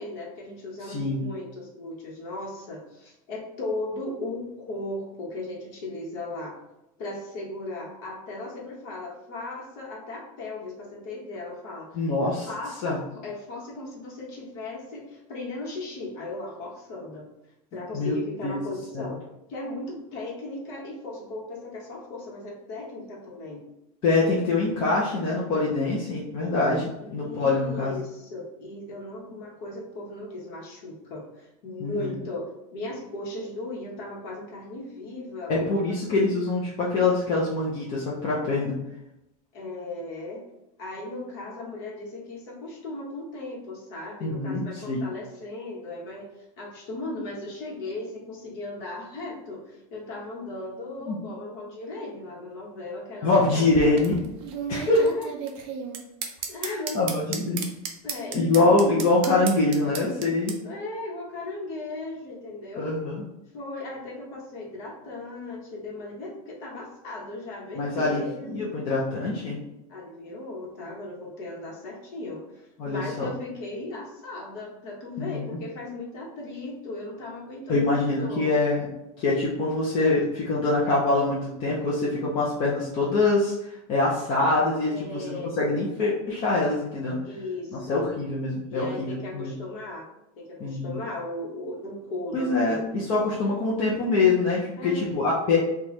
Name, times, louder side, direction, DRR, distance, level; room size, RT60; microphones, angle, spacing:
voice 1, 0.0-6.6 7.0-12.0 12.4-17.3 17.7-19.2 19.5-23.6 27.0-36.0 39.5-40.4 40.8-46.3 46.6-54.0 55.0-55.3 56.5-57.1 57.5-57.6 58.0-58.8 60.6-62.9 63.5-68.5 69.9-78.5 84.9-85.5 87.2-88.0 88.7-90.0 90.4-92.8 94.8-95.1, left 2 dB, 45° left, -2 dB, 1.0 m, -37 dB
voice 2, 0.8-1.2 11.9-12.5 12.8-13.0 17.9-18.1 18.4-18.6 18.9-19.1 24.0-28.0 31.8-32.2 35.5-38.8 44.2-45.0 51.0-51.2 53.2-54.2 54.7-55.0 56.6-57.7 58.3-60.5 62.7-63.3 67.8-68.2 68.5-69.6 72.8-73.3 75.2-75.6 77.7-78.9 79.2-87.2 87.9-89.5 90.6-91.0 92.3-95.6, left 3 dB, 30° left, -6 dB, 0.5 m, -24 dB
sound 1, 53.5-60.6, right 6 dB, 30° right, 0.3 m, -34 dB
3.0 x 2.3 x 4.1 m, 0.89 s
supercardioid pair, 170°, 19 cm